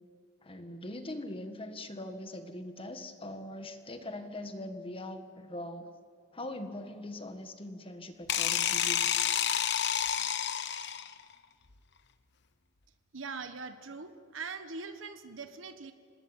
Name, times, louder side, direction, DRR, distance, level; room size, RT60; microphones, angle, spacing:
voice 1, 0.4-5.9 6.3-9.1, left 1 dB, 30° left, 7 dB, 1.8 m, -41 dB
sound 1, 8.3-11.2, left 9 dB, 60° left, 1.0 m, -29 dB
voice 2, 13.1-15.9, right 4 dB, 80° right, 8 dB, 1.3 m, -42 dB
26.5 x 19.0 x 9.1 m, 2.2 s
head